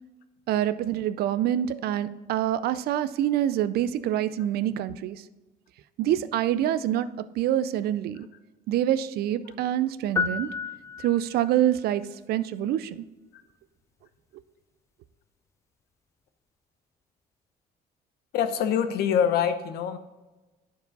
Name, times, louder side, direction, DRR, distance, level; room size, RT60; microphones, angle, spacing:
voice 1, 0.5-5.2 6.0-8.3 8.7-10.5 11.0-13.0, right 11 dB, 70° right, 15 dB, 0.4 m, -26 dB
sound 1, 10.2-11.6, left 6 dB, 15° left, 0.3 m, -31 dB
voice 2, 18.3-20.0, left 8 dB, 70° left, 9 dB, 0.8 m, -25 dB
10.5 x 4.7 x 4.0 m, 1.1 s
cardioid pair, 110°, 17 cm